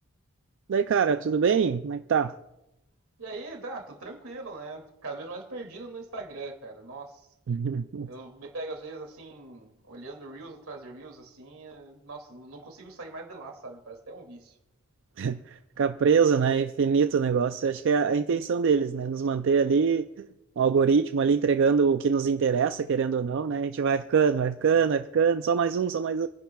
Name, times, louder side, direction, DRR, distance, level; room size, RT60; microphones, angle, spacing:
voice 1, 0.7-2.3 7.5-8.1 15.2-20.3 20.6-26.3, right 6 dB, 60° right, 0.4 m, -24 dB
voice 2, 3.2-7.3 8.1-14.6, right 3 dB, 85° right, 2.4 m, -41 dB
29.5 x 10.5 x 2.3 m
head